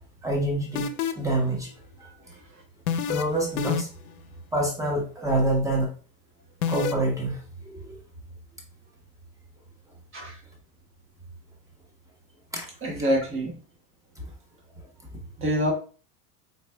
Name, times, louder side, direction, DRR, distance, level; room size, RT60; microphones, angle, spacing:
voice 1, 0.2-0.9 1.2-1.7 2.0-2.2 3.1-3.9 4.5-5.9 6.7-8.0 10.2-10.3 12.5-12.7 14.2-14.3 14.8-14.9, right 1 dB, 5° right, 0 dB, 1.1 m, -27 dB
sound 1, 0.8-1.3 2.9-3.2 3.6-4.1 6.6-6.9, left 7 dB, 85° left, 0.5 m, -27 dB
voice 2, 12.8-13.5 15.4-15.7, equal, 30° right, 1 dB, 1.4 m, -26 dB
4.1 x 3.1 x 2.3 m, 0.38 s
hypercardioid pair, 100°, 43 cm